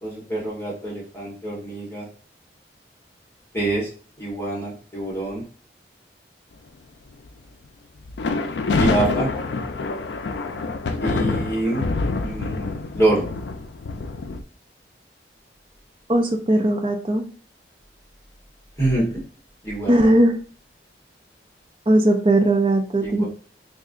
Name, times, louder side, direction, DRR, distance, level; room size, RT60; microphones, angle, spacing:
voice 1, 0.0-2.0 3.5-3.9 4.2-5.4 8.8-9.3 11.0-11.9 12.2-13.2 18.8-19.2 19.6-19.9 23.0-23.2, right 2 dB, 15° left, -5 dB, 1.5 m, -25 dB
sound 1, 8.1-14.4, left 3 dB, 80° left, 0.4 m, -26 dB
voice 2, 16.1-17.3 19.9-20.4 21.9-23.2, right 1 dB, 30° right, 5 dB, 0.5 m, -18 dB
3.2 x 2.6 x 3.7 m, 0.40 s
head